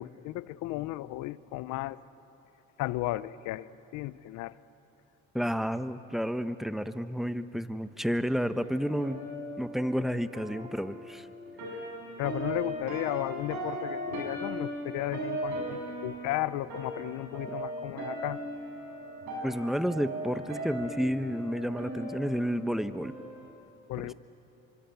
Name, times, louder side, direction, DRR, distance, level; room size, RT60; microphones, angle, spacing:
voice 1, 0.0-2.0 2.8-4.5 12.2-18.4 23.9-24.1, left 16 dB, 85° left, 17 dB, 0.7 m, -34 dB
voice 2, 5.3-9.2 9.6-11.3 19.4-23.1, equal, ahead, 11 dB, 1.1 m, -31 dB
sound 1, 8.6-23.5, right 1 dB, 75° right, 7.5 m, -38 dB
26.0 x 24.5 x 9.3 m, 2.9 s
supercardioid pair, 80°, 29 cm